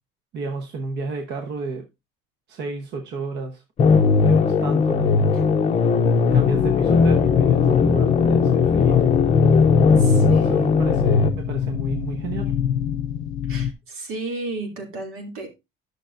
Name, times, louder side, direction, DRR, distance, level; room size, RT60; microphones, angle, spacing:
voice 1, 0.3-1.9 2.5-3.6 4.2-5.8 6.3-9.1 10.0-12.5, right 3 dB, 55° right, 1.1 m, -32 dB
sound 1, 3.8-11.3, left 5 dB, 30° left, 0.6 m, -18 dB
sound 2, 6.3-13.7, left 9 dB, 75° left, 0.5 m, -26 dB
voice 2, 9.9-10.7 13.5-15.5, right 2 dB, 80° right, 2.7 m, -33 dB
11.5 x 6.4 x 2.5 m
cardioid pair, 180°, 21 cm